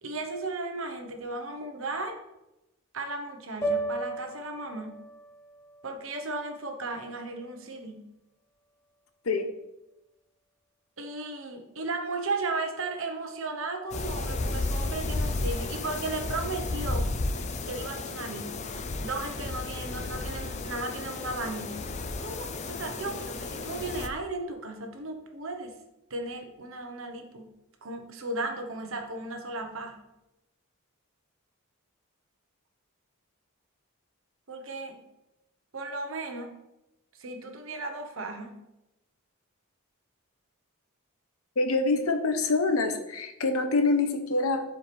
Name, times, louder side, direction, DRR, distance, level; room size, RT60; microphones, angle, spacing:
voice 1, 0.0-2.2 2.9-5.0 5.8-8.1 11.0-17.1 17.7-21.9 22.2-25.7 26.1-27.5 27.8-30.0 34.5-35.0 35.7-36.6 37.1-38.6, right 2 dB, 70° right, 4 dB, 1.1 m, -35 dB
sound 1, 3.6-7.9, right 2 dB, 15° left, 1.0 m, -36 dB
sound 2, 13.9-24.1, left 2 dB, 30° left, 0.5 m, -33 dB
voice 2, 41.6-44.6, left 3 dB, 85° left, 6 dB, 1.0 m, -25 dB
11.5 x 4.9 x 3.4 m, 0.94 s
head